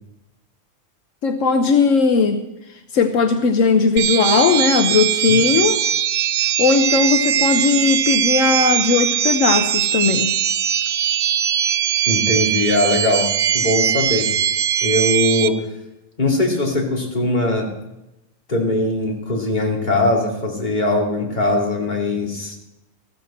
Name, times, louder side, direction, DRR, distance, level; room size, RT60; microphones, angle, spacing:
voice 1, 1.2-2.4 2.9-5.8 6.6-10.3, left 5 dB, 80° left, 6 dB, 1.3 m, -17 dB
sound 1, 4.0-15.5, right 9 dB, 70° right, 1.0 m, -20 dB
voice 2, 12.1-14.3 14.8-15.6 16.2-17.7 18.5-22.6, left 1 dB, 35° left, -1 dB, 2.6 m, -20 dB
14.0 x 13.5 x 4.3 m, 0.93 s
omnidirectional pair, 1.3 m